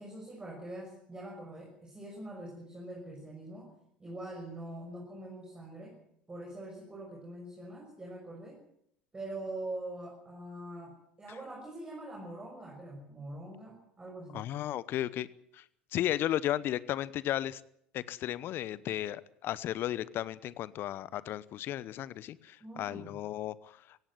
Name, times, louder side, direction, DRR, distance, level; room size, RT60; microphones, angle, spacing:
voice 1, 0.0-6.0 6.3-8.6 9.1-14.5 22.6-23.2, right 1 dB, 15° right, -1 dB, 6.1 m, -44 dB
voice 2, 14.3-15.3 15.5-15.6 15.9-17.6 17.9-24.0, left 12 dB, 45° left, 19 dB, 0.9 m, -34 dB
17.5 x 16.5 x 9.4 m, 0.71 s
figure-of-eight pair, 75°, 5 cm